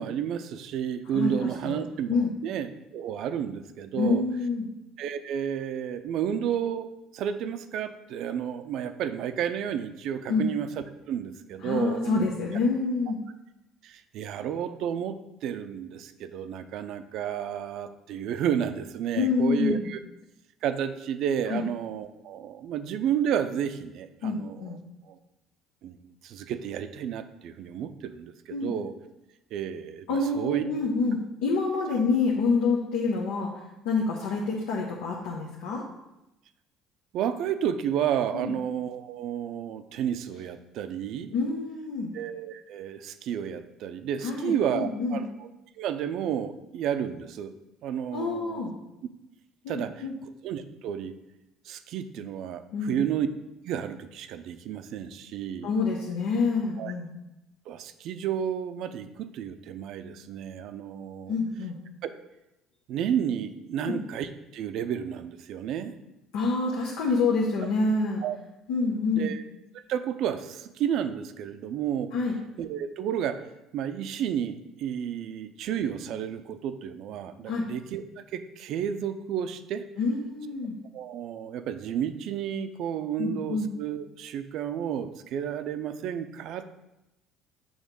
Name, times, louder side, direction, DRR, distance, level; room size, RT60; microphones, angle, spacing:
voice 1, 0.0-4.2 5.0-10.7 11.1-12.3 13.8-15.2 15.4-20.0 20.6-24.8 25.0-25.2 25.8-26.0 26.2-28.9 29.5-30.6 37.1-41.3 42.1-45.5 45.8-47.5 47.8-48.7 49.7-50.0 50.4-51.1 51.7-53.3 53.6-55.7 56.8-56.9 57.7-61.3 62.0-62.1 62.9-65.9 68.2-68.4 69.1-69.4 69.7-72.1 72.6-73.4 73.7-78.0 78.3-79.8 80.9-86.8, right 9 dB, 70° right, 10 dB, 0.4 m, -31 dB
voice 2, 1.1-2.3 4.0-4.7 10.3-10.5 11.6-13.2 19.1-19.9 21.5-21.6 24.2-24.8 28.5-28.7 30.1-33.5 33.8-35.8 38.3-38.5 41.3-42.1 44.2-45.2 48.1-48.7 49.6-50.1 52.7-53.0 55.6-57.1 61.3-61.8 63.8-64.0 66.3-68.2 68.7-69.3 72.1-72.4 77.5-77.7 80.0-80.8 83.2-83.7, left 4 dB, 85° left, -2 dB, 0.8 m, -27 dB
6.3 x 3.1 x 5.1 m, 0.93 s
supercardioid pair, 95°, 0 cm